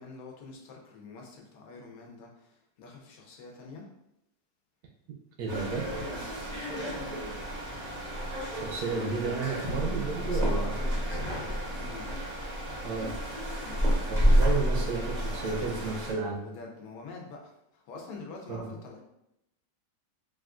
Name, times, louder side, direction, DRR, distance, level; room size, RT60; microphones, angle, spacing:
voice 1, 0.0-3.9 5.9-7.4 8.7-8.9 9.6-9.9 10.3-12.2 13.5-14.4 16.2-19.0, left 4 dB, 65° left, 0 dB, 1.0 m, -46 dB
voice 2, 5.4-5.9 8.5-10.7 12.8-13.1 14.1-16.4 18.5-18.7, right 4 dB, 75° right, 0 dB, 1.1 m, -32 dB
sound 1, 5.5-16.1, equal, 40° right, 0.6 m, -30 dB
Bowed string instrument, 7.2-12.2, left 1 dB, 50° left, 0.7 m, -54 dB
3.5 x 2.4 x 2.3 m, 0.84 s
omnidirectional pair, 1.8 m